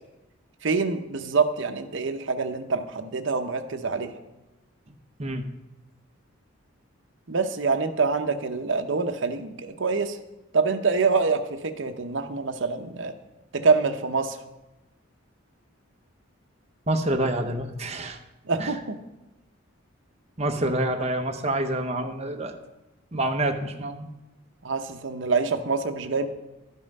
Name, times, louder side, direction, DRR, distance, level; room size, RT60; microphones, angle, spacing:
voice 1, 0.6-4.1 7.3-10.2 10.5-13.1 13.5-14.4 18.5-19.0 24.6-26.3, right 4 dB, 65° right, 7 dB, 0.7 m, -25 dB
voice 2, 16.9-18.2 18.6-18.7 20.4-22.5 23.1-24.1, right 1 dB, 30° right, 5 dB, 0.7 m, -27 dB
12.0 x 5.6 x 5.4 m, 1.0 s
head